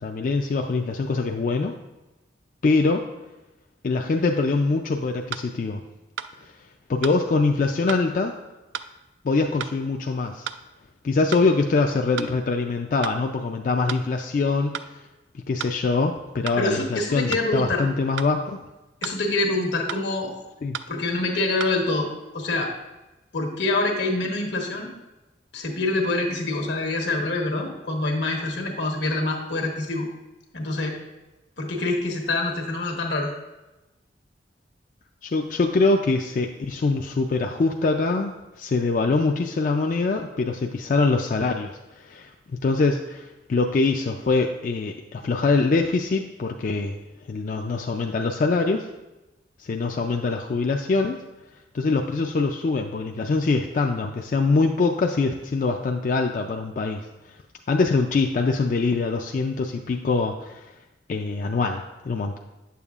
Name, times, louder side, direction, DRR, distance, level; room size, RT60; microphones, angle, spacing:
voice 1, 0.0-1.8 2.6-3.1 3.8-5.8 6.9-8.3 9.2-10.5 11.0-15.0 15.5-18.6 20.6-20.8 35.2-47.0 47.3-48.9 49.6-51.2 51.7-57.1 57.7-60.7 61.1-62.4, left 3 dB, 45° left, 3 dB, 0.3 m, -24 dB
sound 1, 4.5-4.6 5.3-5.5 6.2-6.3 7.0-7.2 7.9-8.1 8.7-8.9 9.6-9.8 10.5-10.6 11.3-11.5 12.2-12.3 13.0-13.2 13.9-14.1 14.7-14.9 15.6-15.8 16.5-16.6 17.3-17.5 18.2-18.3 19.0-19.2 19.9-20.1 20.7-20.9 21.6-21.8, right 8 dB, 85° right, 0.3 m, -33 dB
voice 2, 16.6-17.8 19.0-20.3 20.9-22.1 22.3-22.7 23.3-24.9 25.5-30.1 30.5-31.0 31.6-33.3, left 2 dB, 80° left, 1 dB, 1.2 m, -25 dB
8.7 x 6.9 x 2.4 m, 1.1 s
head